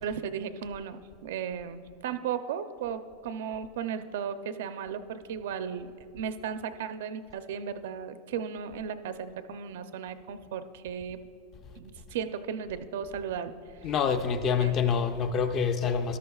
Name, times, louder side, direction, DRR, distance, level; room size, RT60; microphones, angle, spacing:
voice 1, 0.0-5.9 6.1-11.2 11.8-13.5 14.6-14.8, right 7 dB, 70° right, 10 dB, 0.5 m, -35 dB
voice 2, 13.8-16.2, left 6 dB, 25° left, 8 dB, 0.5 m, -26 dB
13.5 x 12.0 x 2.3 m, 2.4 s
supercardioid pair, 170°, 0 cm